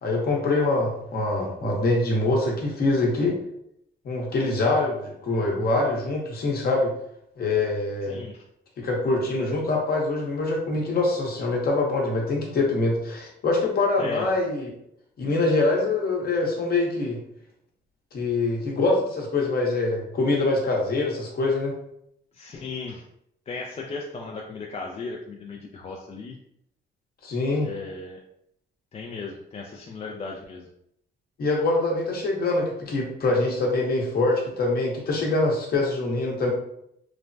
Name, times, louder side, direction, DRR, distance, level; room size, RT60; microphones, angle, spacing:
voice 1, 0.0-3.4 4.0-6.9 7.4-8.2 8.8-14.7 15.2-17.2 18.1-21.8 27.2-27.7 31.4-36.5, left 2 dB, 50° left, -1 dB, 0.9 m, -24 dB
voice 2, 8.1-8.4 14.0-14.2 22.3-23.0 23.5-26.4 27.6-28.2 28.9-30.7, left 4 dB, 35° left, -1 dB, 0.3 m, -36 dB
3.1 x 2.1 x 2.6 m, 0.76 s
cardioid pair, 105°, 20 cm